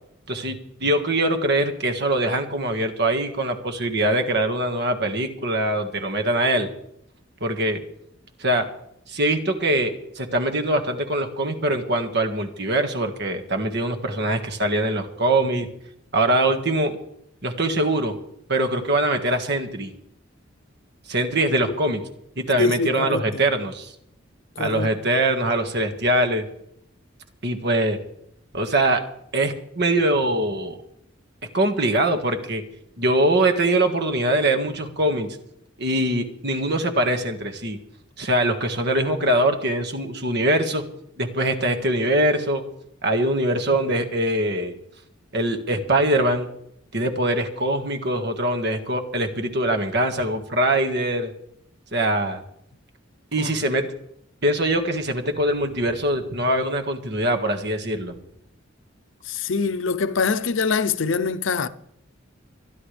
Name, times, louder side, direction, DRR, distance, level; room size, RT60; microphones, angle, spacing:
voice 1, 0.3-6.7 7.4-7.8 8.4-8.6 9.1-15.7 16.1-17.0 17.4-18.2 18.5-19.9 21.1-22.0 22.4-23.9 24.6-26.4 27.4-28.0 28.5-29.0 29.3-30.8 31.5-32.6 33.0-35.4 35.8-37.8 38.2-40.8 41.2-42.6 43.0-44.8 45.3-46.5 46.9-51.3 51.9-52.4 53.3-53.9 54.4-58.1, right 1 dB, 60° right, 1.8 m, -23 dB
voice 2, 22.6-23.4 24.6-24.9 53.4-53.5 59.3-61.7, left 4 dB, 75° left, 0.7 m, -24 dB
25.0 x 11.0 x 3.4 m
head